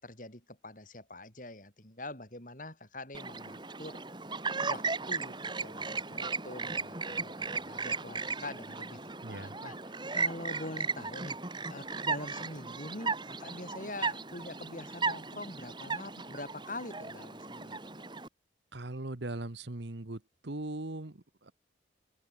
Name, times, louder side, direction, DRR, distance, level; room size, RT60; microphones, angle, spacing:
voice 1, 0.0-4.0 4.7-9.0 9.3-11.4 11.7-17.8, left 2 dB, 45° left, 7.0 m, -44 dB
Chirp tweet, 3.1-18.3, right 4 dB, 25° right, 2.8 m, -36 dB
voice 2, 9.2-9.6 18.7-21.5, right 2 dB, 70° right, 1.4 m, -40 dB
head